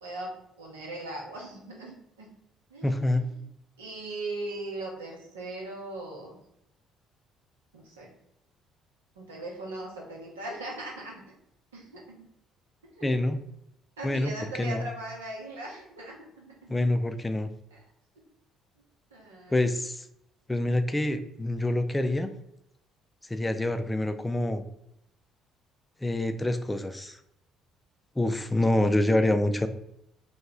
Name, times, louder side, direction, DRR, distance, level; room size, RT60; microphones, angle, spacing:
voice 1, 0.0-2.3 2.7-3.5 3.8-6.4 7.7-8.1 9.2-11.2 11.7-12.2 12.9-13.1 14.0-16.8 17.7-17.9 19.1-19.6, right 2 dB, 85° right, -3 dB, 0.8 m, -39 dB
voice 2, 2.8-3.3 13.0-13.4 14.0-14.3 14.6-14.8 16.7-17.5 19.5-20.1 20.5-22.3 23.3-24.6 26.0-27.2 28.2-29.7, left 1 dB, 15° left, 9 dB, 0.4 m, -26 dB
2.9 x 2.3 x 3.5 m, 0.78 s
hypercardioid pair, 50°, 0 cm